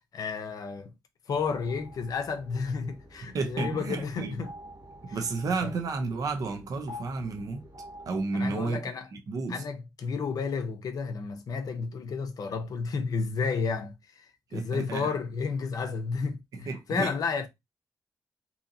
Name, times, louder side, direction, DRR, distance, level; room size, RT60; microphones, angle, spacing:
voice 1, 0.1-0.9 1.3-4.5 5.1-5.2 5.6-5.7 8.3-9.1 9.5-17.5, left 5 dB, 65° left, 0.5 m, -32 dB
sound 1, 1.3-8.2, left 2 dB, 90° right, 0.9 m, -47 dB
voice 2, 3.3-4.4 5.0-7.6 8.1-9.6 14.5-15.2 16.5-17.1, right 3 dB, 60° right, 0.6 m, -32 dB
2.7 x 2.5 x 2.6 m
wide cardioid pair, 140°, 7 cm